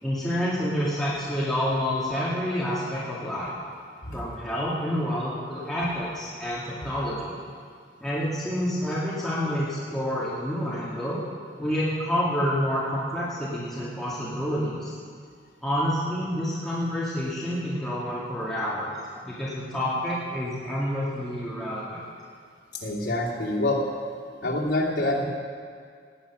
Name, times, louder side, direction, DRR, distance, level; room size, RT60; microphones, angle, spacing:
voice 1, 0.0-3.5 4.1-7.3 8.0-11.2 11.6-14.9 15.6-18.9 19.2-22.0, equal, ahead, -9 dB, 2.1 m, -28 dB
voice 2, 22.7-23.8 24.4-25.3, left 1 dB, 75° left, -5 dB, 2.8 m, -26 dB
17.5 x 9.3 x 6.1 m, 2.1 s
head